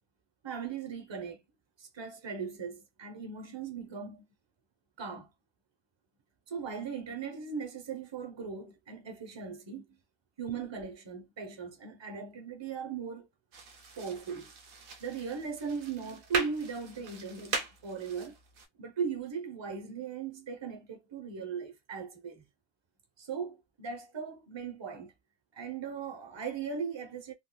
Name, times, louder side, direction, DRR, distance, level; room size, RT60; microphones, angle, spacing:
voice 1, 0.4-1.4 1.8-4.2 5.0-5.3 6.5-10.0 10.4-13.3 14.0-14.5 15.0-18.4 18.8-22.4 23.2-25.1 25.5-27.3, right 6 dB, 30° right, 0.5 m, -38 dB
sound 1, 13.5-18.7, right 4 dB, 80° right, 1.1 m, -40 dB
3.4 x 2.3 x 2.2 m
omnidirectional pair, 1.4 m